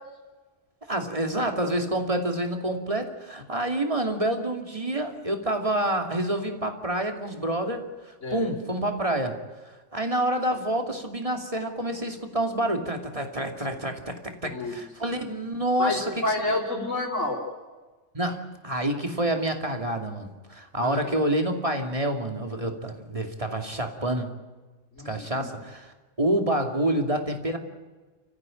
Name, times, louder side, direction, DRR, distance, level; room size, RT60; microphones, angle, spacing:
voice 1, 0.9-7.8 8.3-9.4 9.9-16.2 18.1-24.3 25.0-27.6, right 1 dB, 30° right, 4 dB, 2.7 m, -28 dB
voice 2, 14.4-14.7 15.8-17.4 20.8-21.0 24.9-25.5, left 2 dB, 90° left, -3 dB, 4.4 m, -29 dB
29.5 x 15.0 x 9.0 m, 1.3 s
omnidirectional pair, 1.3 m